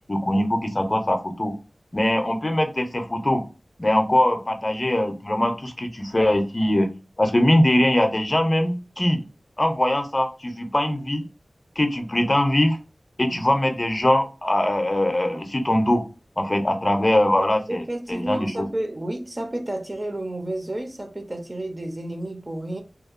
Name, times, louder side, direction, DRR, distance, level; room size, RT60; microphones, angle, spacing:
voice 1, 0.1-1.5 1.9-3.4 3.8-6.9 7.2-9.2 9.6-11.2 11.8-12.8 13.2-16.0 16.4-17.8 18.1-18.7, left 1 dB, 35° left, 0.5 m, -22 dB
voice 2, 17.7-22.8, right 1 dB, 35° right, 0.5 m, -31 dB
2.8 x 2.1 x 2.4 m
wide cardioid pair, 65°, 0 cm